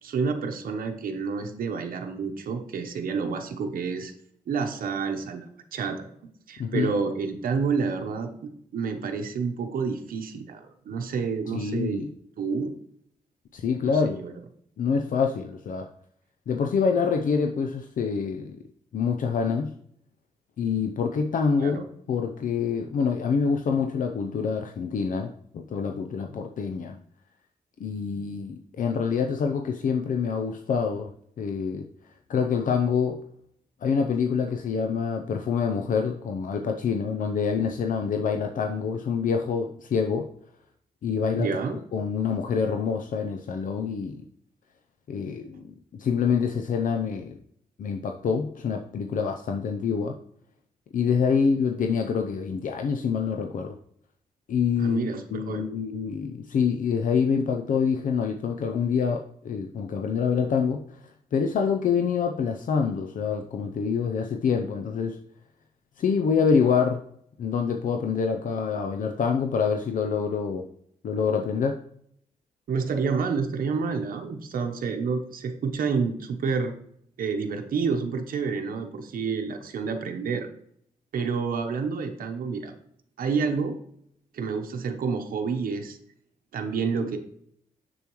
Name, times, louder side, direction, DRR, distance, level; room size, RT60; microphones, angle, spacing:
voice 1, 0.0-4.1 4.5-6.1 6.5-8.3 8.7-12.0 12.4-12.7 13.8-14.3 21.6-21.8 41.4-41.8 54.8-55.7 72.7-76.7 77.2-80.5 81.1-82.7 83.2-83.8 84.3-86.0 86.5-87.2, right 5 dB, 80° right, 4 dB, 0.9 m, -29 dB
voice 2, 6.6-6.9 11.5-12.1 13.5-14.2 14.8-15.9 16.5-18.6 18.9-19.7 20.6-27.0 27.8-31.1 31.4-31.9 32.3-33.2 33.8-40.3 41.0-41.6 41.9-44.3 45.1-47.4 47.8-50.1 50.9-53.7 54.5-61.0 61.3-65.2 66.0-67.0 67.4-70.7 71.0-71.8, left 6 dB, 70° left, 4 dB, 0.6 m, -26 dB
7.1 x 6.9 x 3.1 m, 0.68 s
cardioid pair, 100°, 14 cm